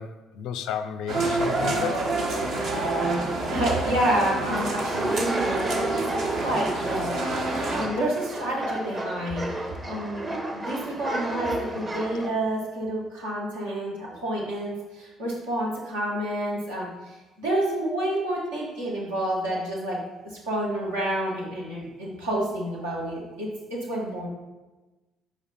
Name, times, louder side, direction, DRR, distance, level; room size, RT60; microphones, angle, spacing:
voice 1, 0.0-2.1, left 8 dB, 60° left, 11 dB, 0.3 m, -33 dB
sound 1, 1.1-7.9, right 2 dB, 60° right, 1.2 m, -27 dB
voice 2, 3.5-5.6 6.2-20.0 20.2-24.3, right 1 dB, 75° right, -5 dB, 1.6 m, -29 dB
sound 2, 4.5-12.3, right 1 dB, 25° right, 1.0 m, -32 dB
5.0 x 4.9 x 4.4 m, 1.1 s
figure-of-eight pair, 50°, 0 cm